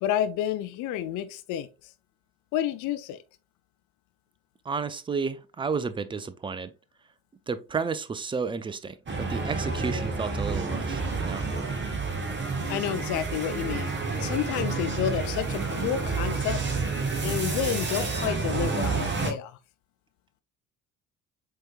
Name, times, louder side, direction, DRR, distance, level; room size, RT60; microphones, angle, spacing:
voice 1, 0.0-1.7 2.5-3.2 12.7-13.9 14.2-16.6 17.2-19.5, left 10 dB, 50° left, 0.6 m, -30 dB
voice 2, 4.7-6.7 7.5-11.5, right 5 dB, 15° right, 0.4 m, -32 dB
sound 1, 9.1-19.3, right 4 dB, 30° right, 1.4 m, -29 dB
7.6 x 2.9 x 2.3 m
figure-of-eight pair, 45°, 39 cm